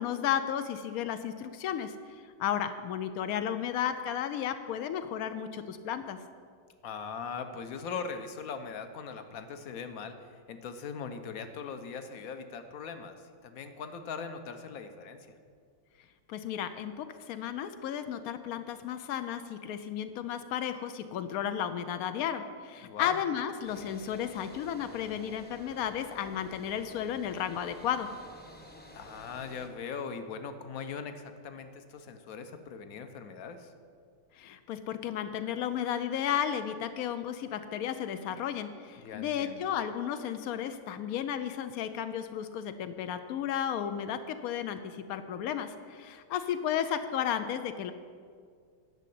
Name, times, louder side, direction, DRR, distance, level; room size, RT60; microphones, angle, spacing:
voice 1, 0.0-6.2 16.3-28.1 34.3-47.9, left 9 dB, 85° left, 9 dB, 0.8 m, -33 dB
voice 2, 6.8-15.3 22.8-23.2 28.9-33.7 39.0-39.6, left 5 dB, 60° left, 8 dB, 1.0 m, -40 dB
sound 1, 23.6-29.7, equal, 10° left, 0.6 m, -51 dB
10.5 x 6.2 x 8.4 m, 2.1 s
omnidirectional pair, 2.1 m